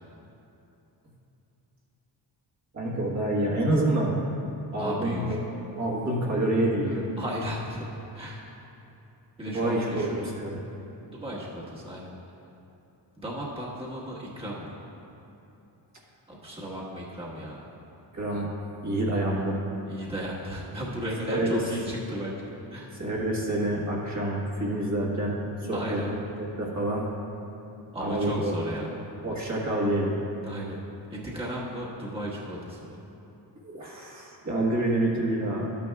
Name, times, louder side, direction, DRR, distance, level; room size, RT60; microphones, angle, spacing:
voice 1, 2.7-4.2 4.7-5.4 5.7-7.1 9.5-10.1 10.3-10.6 18.1-18.4 18.8-19.6 21.3-21.6 23.0-26.0 26.4-27.0 28.0-28.5 29.2-30.2 33.6-35.7, right 1 dB, 40° right, -4 dB, 1.4 m, -27 dB
voice 2, 4.7-5.4 7.2-7.9 8.1-8.5 9.4-10.4 11.0-12.1 13.2-14.8 16.3-17.7 19.9-23.0 25.7-26.1 27.9-28.9 30.4-30.8 31.1-33.0, equal, 10° right, -6 dB, 1.4 m, -35 dB
12.0 x 9.2 x 2.3 m, 3.0 s
cardioid pair, 105°, 45 cm